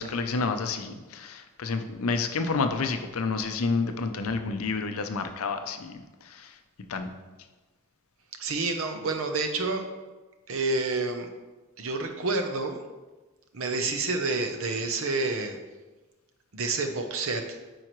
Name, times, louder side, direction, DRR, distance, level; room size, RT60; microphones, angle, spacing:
voice 1, 0.0-6.6 6.9-7.1, left 4 dB, 70° left, 7 dB, 0.6 m, -29 dB
voice 2, 8.4-9.8 10.5-11.3 11.8-12.8 13.5-15.6 16.5-17.4, right 3 dB, 60° right, 5 dB, 0.7 m, -28 dB
9.0 x 4.7 x 3.0 m, 1.2 s
head